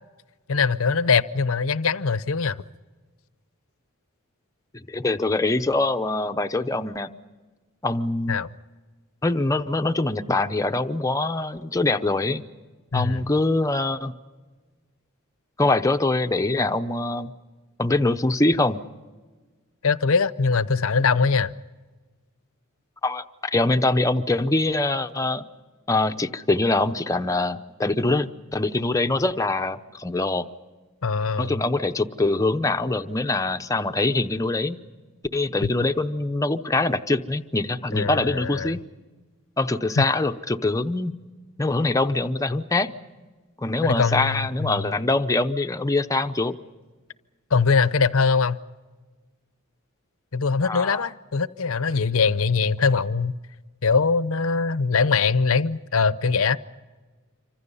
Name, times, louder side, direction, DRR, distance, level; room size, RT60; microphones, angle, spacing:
voice 1, 0.5-2.6 8.3-8.5 12.9-13.3 19.8-21.5 31.0-31.5 35.6-35.7 37.9-38.7 40.0-40.1 43.8-44.9 47.5-48.6 50.3-53.4 53.8-56.6, left 5 dB, 65° left, 15 dB, 0.7 m, -22 dB
voice 2, 4.9-7.1 7.8-8.4 9.2-12.4 12.9-14.1 15.6-17.3 17.8-18.8 23.0-25.4 25.9-30.5 31.4-34.8 35.3-38.8 39.6-41.1 41.6-42.9 43.6-46.6 50.6-51.1, left 2 dB, 15° left, 7 dB, 0.7 m, -23 dB
27.5 x 25.0 x 5.5 m, 1.3 s
head